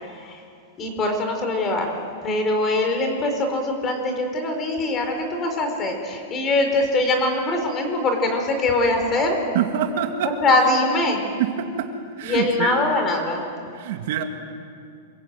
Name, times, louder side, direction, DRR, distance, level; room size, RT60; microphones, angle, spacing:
voice 1, 0.8-9.4 10.2-11.2 12.2-13.5, left 2 dB, 20° left, 4 dB, 4.6 m, -22 dB
voice 2, 9.5-10.3 11.4-11.9 12.2-12.7 13.7-14.2, right 9 dB, 55° right, 4 dB, 2.4 m, -25 dB
27.5 x 23.5 x 9.3 m, 2.4 s
supercardioid pair, 165°, 0 cm